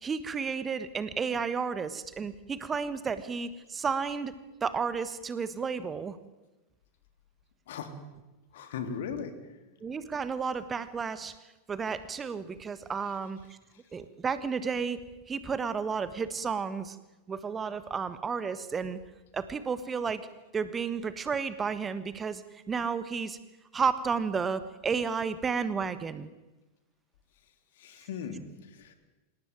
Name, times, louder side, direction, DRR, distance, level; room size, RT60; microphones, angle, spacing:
voice 1, 0.0-4.3 4.6-6.2 9.8-11.3 11.7-13.6 13.9-15.0 15.3-17.0 17.3-19.0 19.3-20.3 20.5-23.4 23.7-26.3, right 5 dB, 20° right, 13 dB, 1.4 m, -32 dB
voice 2, 8.5-9.3 27.8-28.9, left 6 dB, 55° left, 7 dB, 3.4 m, -38 dB
26.5 x 18.0 x 9.4 m, 1.1 s
figure-of-eight pair, 90°, 0 cm